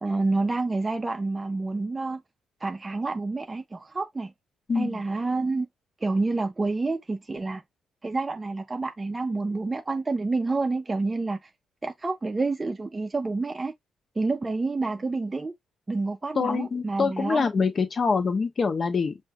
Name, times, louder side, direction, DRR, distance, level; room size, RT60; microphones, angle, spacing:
voice 1, 0.0-2.2 2.6-4.3 4.7-5.7 6.0-7.6 8.0-11.5 11.8-13.7 14.2-15.5 15.9-17.5, right 3 dB, 20° right, 0.5 m, -28 dB
voice 2, 4.7-5.0 16.3-19.2, left 5 dB, 40° left, 1.0 m, -25 dB
5.4 x 2.6 x 2.4 m
cardioid pair, 90°, 0 cm